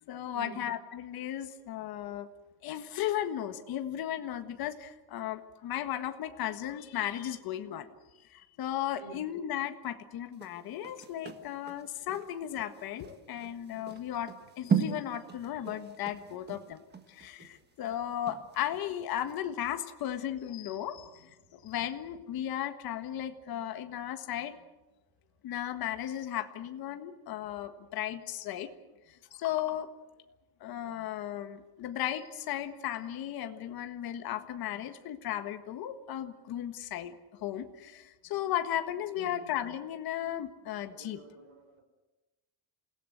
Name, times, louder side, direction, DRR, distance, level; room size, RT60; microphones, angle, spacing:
voice 1, 0.1-2.3 2.6-7.9 8.3-16.8 17.1-24.6 25.4-28.7 29.1-29.9 30.6-37.1 37.4-41.2, left 11 dB, 55° left, 8 dB, 1.6 m, -35 dB
sound 1, 10.3-18.9 19.3-19.4, right 6 dB, 25° right, 1.6 m, -37 dB
voice 2, 39.2-39.5 40.9-41.8, right 4 dB, 65° right, 5 dB, 6.3 m, -49 dB
28.0 x 17.5 x 7.9 m, 1.1 s
cardioid pair, 175°, 44 cm